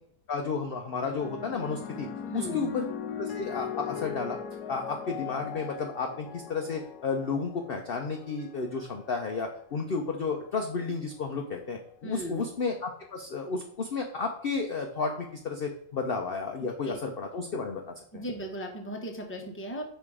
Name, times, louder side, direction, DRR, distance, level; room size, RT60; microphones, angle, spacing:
voice 1, 0.3-2.1 2.3-2.8 3.2-4.4 4.7-18.2, left 4 dB, 55° left, 3 dB, 0.7 m, -32 dB
sound 1, 1.0-9.6 10.5-10.9, left 8 dB, 85° left, 1.3 m, -40 dB
voice 2, 2.3-2.7 12.0-12.5 16.8-17.0 18.1-19.8, right 1 dB, 10° left, 2 dB, 0.8 m, -37 dB
5.6 x 4.1 x 4.8 m, 0.66 s
omnidirectional pair, 1.6 m